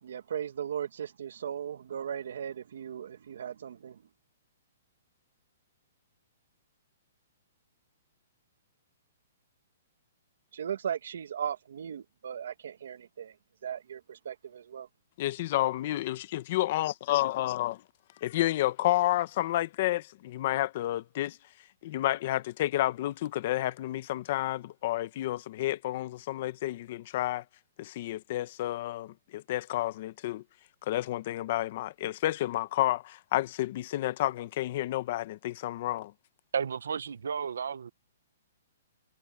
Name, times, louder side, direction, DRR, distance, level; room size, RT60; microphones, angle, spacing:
voice 1, 0.0-4.0 10.5-13.3 13.6-14.9, right 8 dB, 65° right, 1.7 m, -37 dB
voice 2, 15.2-17.8 18.2-21.4 21.8-27.4 27.8-30.4 30.8-36.1, left 15 dB, 40° left, 1.0 m, -30 dB
voice 3, 36.5-37.9, right 7 dB, 85° right, 1.1 m, -32 dB
hypercardioid pair, 170°, 0 cm